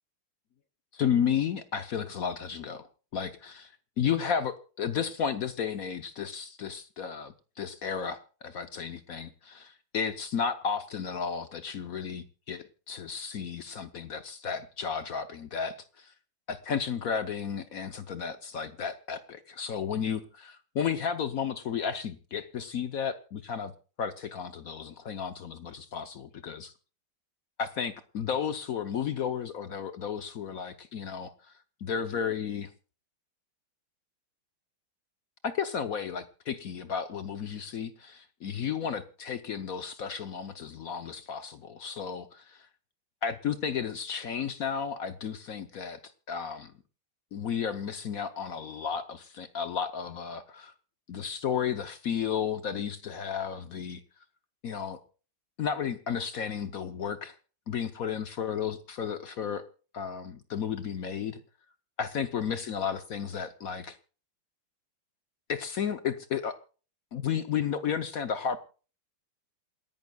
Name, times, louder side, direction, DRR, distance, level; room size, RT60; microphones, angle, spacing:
voice 1, 0.9-3.6 4.0-16.1 16.5-23.7 24.0-26.7 27.6-31.3 31.8-32.7 35.4-42.7 43.2-46.0 46.3-46.7 47.3-50.7 51.1-54.0 54.6-55.0 55.6-57.3 57.7-59.7 59.9-61.4 62.0-64.0 65.5-66.6 67.1-68.6, left 7 dB, 60° left, 11 dB, 0.9 m, -33 dB
27.5 x 11.0 x 2.3 m, 0.37 s
omnidirectional pair, 2.3 m